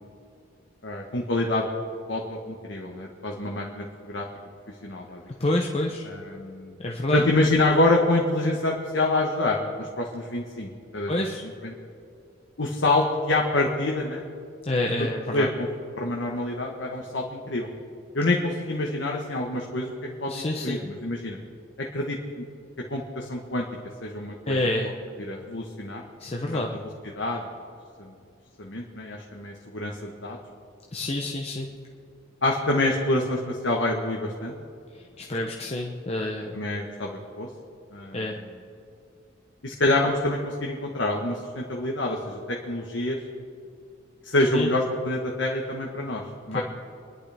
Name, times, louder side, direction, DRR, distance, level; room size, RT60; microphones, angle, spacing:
voice 1, 0.8-1.7 2.1-4.3 4.8-5.2 6.1-6.8 7.1-11.3 11.6-11.7 12.6-14.2 15.3-15.7 16.0-17.7 18.1-19.9 20.2-21.4 21.8-22.4 22.9-23.7 24.0-24.6 25.2-26.0 26.5-26.6 27.1-27.4 28.0-28.1 28.6-30.4 32.4-34.6 36.5-37.5 37.9-38.2 39.6-43.2 44.2-46.6, left 2 dB, 65° left, 0 dB, 1.3 m, -26 dB
voice 2, 5.4-6.1 6.8-7.3 11.1-11.4 14.6-15.5 20.3-20.8 24.5-24.9 26.2-26.7 30.9-31.7 34.9-36.6 38.1-38.4 44.5-44.7 46.5-46.6, left 1 dB, 30° left, 0 dB, 0.9 m, -28 dB
25.5 x 11.0 x 3.5 m, 2.4 s
head